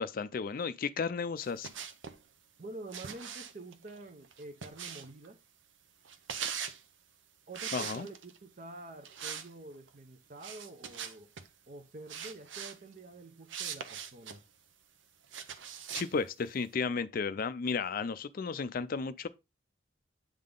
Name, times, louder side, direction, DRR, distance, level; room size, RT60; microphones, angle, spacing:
voice 1, 0.0-1.7 7.7-8.1 15.9-19.3, left 5 dB, 50° left, 0.4 m, -33 dB
sound 1, 1.4-2.2 2.9-5.3 6.1-6.8 7.5-8.4 9.0-9.5 9.7-9.9 10.4-11.5 12.1-12.8 13.5-14.4 15.3-16.1, right 8 dB, 80° right, 0.7 m, -41 dB
voice 2, 2.6-5.4 7.5-11.3 11.7-14.4, right 2 dB, 45° right, 0.7 m, -48 dB
8.7 x 3.7 x 3.7 m
head